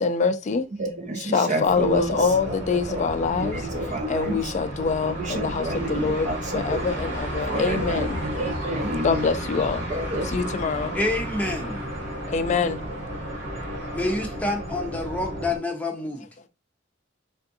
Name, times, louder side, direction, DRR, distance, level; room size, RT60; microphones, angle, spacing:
voice 1, 0.0-0.7 1.2-3.6 4.1-6.3 6.5-8.2 9.0-9.9 10.3-10.9 12.3-12.8, left 5 dB, 40° left, 0.3 m, -25 dB
voice 2, 0.8-3.0 3.4-4.5 5.2-6.9 7.4-9.3 9.9-10.3, right 1 dB, 40° right, 0.6 m, -30 dB
sound 1, 1.6-15.6, equal, 60° right, 1.9 m, -33 dB
voice 3, 10.9-11.9 13.9-16.2, left 2 dB, 10° left, 0.7 m, -28 dB
3.4 x 2.5 x 2.6 m
head